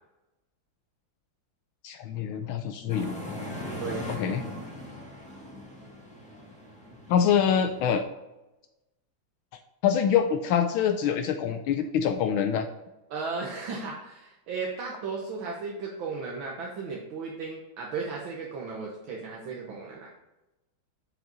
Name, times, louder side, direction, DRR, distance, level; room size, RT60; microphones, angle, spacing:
voice 1, 1.8-3.2 4.1-4.4 7.1-8.0 9.8-12.7, left 8 dB, 80° left, 7 dB, 1.4 m, -25 dB
sound 1, 2.9-8.0, left 1 dB, 5° left, 1.2 m, -40 dB
voice 2, 3.8-4.1 13.1-20.1, right 4 dB, 70° right, -1 dB, 1.7 m, -35 dB
9.1 x 4.8 x 4.0 m, 0.99 s
omnidirectional pair, 2.3 m